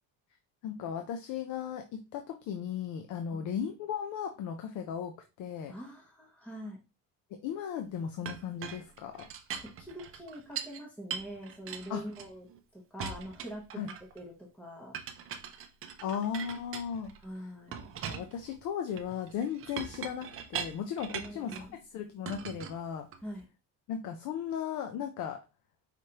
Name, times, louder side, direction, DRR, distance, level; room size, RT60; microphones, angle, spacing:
voice 1, 0.6-5.7 7.4-9.3 11.9-12.0 13.8-13.9 16.0-17.1 18.0-21.7 21.9-23.1 23.9-25.4, left 8 dB, 55° left, 6 dB, 0.6 m, -36 dB
voice 2, 5.7-6.8 9.6-12.5 12.7-15.0 17.2-17.8 21.1-21.8 23.2-23.5, equal, 5° left, -1 dB, 0.8 m, -44 dB
Chink clink, 8.3-10.8 11.1-12.6 13.0-14.2 14.9-17.2 17.7-21.7 22.3-23.4, right 8 dB, 40° right, 0.5 m, -41 dB
5.0 x 3.2 x 2.9 m, 0.28 s
cardioid pair, 165°, 36 cm